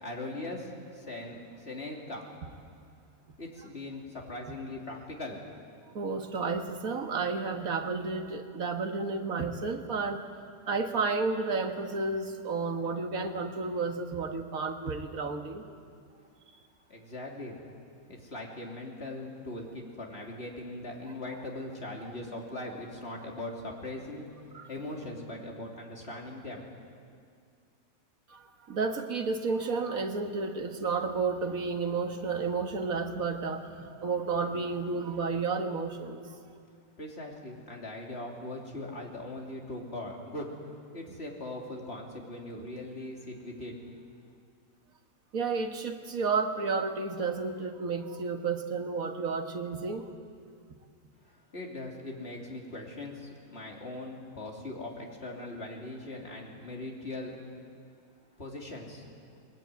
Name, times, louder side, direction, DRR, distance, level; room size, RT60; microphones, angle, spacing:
voice 1, 0.0-2.3 3.4-5.4 16.9-17.6 18.1-26.7 37.0-40.5 40.9-43.7 51.2-57.4 58.4-59.1, left 2 dB, 45° left, -1 dB, 3.5 m, -40 dB
voice 2, 5.9-10.2 10.7-15.6 24.5-24.7 28.3-36.2 45.3-50.1, right 4 dB, 75° right, 4 dB, 2.0 m, -31 dB
21.5 x 20.0 x 9.3 m, 2.2 s
omnidirectional pair, 1.5 m